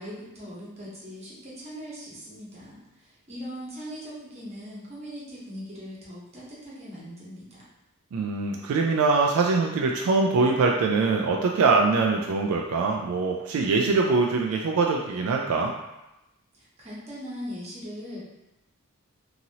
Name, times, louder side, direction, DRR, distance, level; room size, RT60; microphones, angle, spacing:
voice 1, 0.0-7.6 16.5-18.2, equal, 30° right, -7 dB, 1.0 m, -40 dB
voice 2, 8.1-15.7, right 4 dB, 75° right, 0 dB, 0.3 m, -23 dB
2.9 x 2.7 x 2.7 m, 0.95 s
head